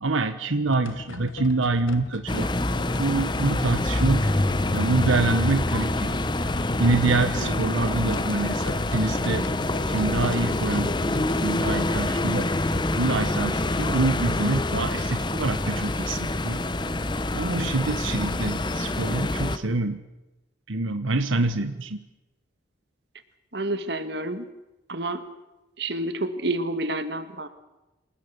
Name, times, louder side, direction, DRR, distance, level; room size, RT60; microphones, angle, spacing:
voice 1, 0.0-2.5 3.0-4.3 4.7-6.2 6.8-9.4 9.9-12.5 13.0-16.6 17.3-20.0 20.7-22.0, right 2 dB, 85° right, 9 dB, 1.3 m, -26 dB
sound 1, 0.7-11.5, left 3 dB, 85° left, 1.1 m, -38 dB
sound 2, 2.3-19.6, left 2 dB, 25° left, 0.9 m, -26 dB
voice 2, 23.5-24.5 24.9-25.2 25.8-27.5, right 2 dB, 55° right, 10 dB, 1.8 m, -29 dB
27.0 x 19.0 x 7.0 m, 1.0 s
head